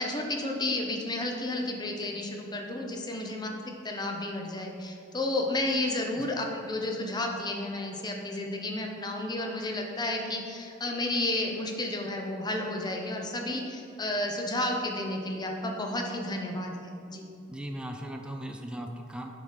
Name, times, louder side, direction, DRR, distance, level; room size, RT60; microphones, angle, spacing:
voice 1, 0.0-17.3, left 1 dB, 20° left, 2 dB, 0.8 m, -32 dB
voice 2, 17.5-19.3, right 1 dB, 5° right, 3 dB, 0.5 m, -38 dB
7.6 x 5.0 x 5.7 m, 2.5 s
head